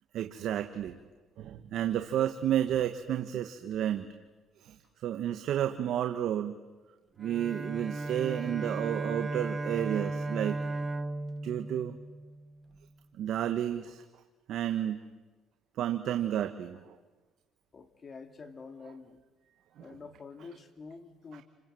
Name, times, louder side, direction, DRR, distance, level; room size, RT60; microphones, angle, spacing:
voice 1, 0.1-1.0 1.4-4.1 4.6-4.8 5.0-6.6 7.2-10.6 11.4-12.0 13.2-14.0 14.5-15.0 15.8-17.0 19.8-20.0 21.3-21.4, right 11 dB, 65° right, 7 dB, 1.3 m, -31 dB
Bowed string instrument, 7.2-12.7, right 2 dB, 25° right, 1.5 m, -36 dB
voice 2, 17.7-19.2 19.8-21.4, left 4 dB, 35° left, 7 dB, 2.7 m, -47 dB
29.0 x 26.0 x 7.8 m, 1.2 s
cardioid pair, 105°, 0 cm